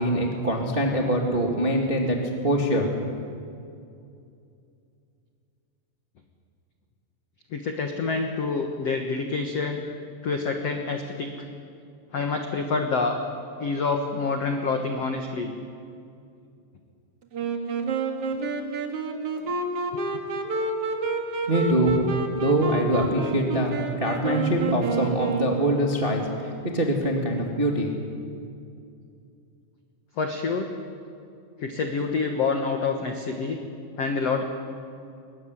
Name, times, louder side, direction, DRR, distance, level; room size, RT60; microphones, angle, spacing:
voice 1, 0.0-2.2 2.4-2.9 21.5-21.9 22.3-27.9, right 1 dB, 25° right, 1 dB, 1.1 m, -24 dB
voice 2, 7.5-9.8 10.2-11.3 12.1-13.2 13.6-15.5 19.4-19.5 30.2-30.7 31.6-33.6 34.0-34.4, left 4 dB, 65° left, 4 dB, 1.5 m, -27 dB
Wind instrument woodwind instrument, 17.3-26.1, right 3 dB, 45° right, 2.0 m, -29 dB
22.0 x 20.0 x 9.9 m, 2.5 s
omnidirectional pair, 5.1 m